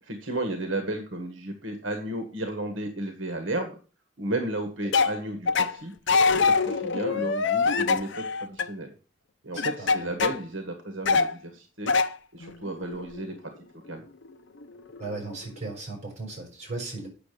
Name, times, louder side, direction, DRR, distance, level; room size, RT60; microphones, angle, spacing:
voice 1, 0.0-3.8 4.2-5.9 6.3-8.9 9.4-11.9 12.3-13.3 13.9-14.0, right 2 dB, 75° right, 6 dB, 1.5 m, -33 dB
sound 1, 4.9-5.2 5.5-5.8 6.1-8.7 9.6-10.4 11.1-11.3 11.9-12.1 12.4-13.4 14.2-14.3 14.6-15.4, left 4 dB, 65° left, 0.7 m, -24 dB
voice 2, 9.5-10.1 15.0-17.1, right 3 dB, 35° right, 0 dB, 6.1 m, -37 dB
8.6 x 6.5 x 6.7 m, 0.38 s
head